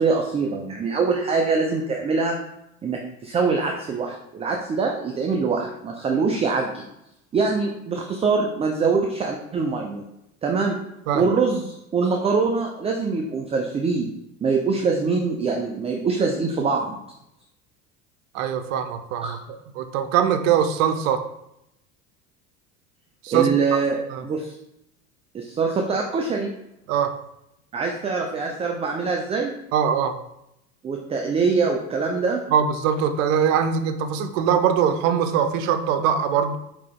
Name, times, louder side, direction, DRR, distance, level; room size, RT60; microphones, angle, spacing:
voice 1, 0.0-2.4 2.8-6.9 7.3-10.0 10.4-10.8 11.1-14.1 14.4-17.0 19.2-19.3 23.3-24.5 25.3-26.5 27.7-29.5 30.8-32.4, right 4 dB, 15° right, 2 dB, 0.3 m, -24 dB
voice 2, 18.3-19.4 19.8-21.3 23.2-23.8 24.1-24.2 26.9-27.2 29.7-30.2 32.5-36.6, right 8 dB, 65° right, 9 dB, 0.6 m, -22 dB
5.0 x 2.9 x 3.5 m, 0.83 s
hypercardioid pair, 80°, 42 cm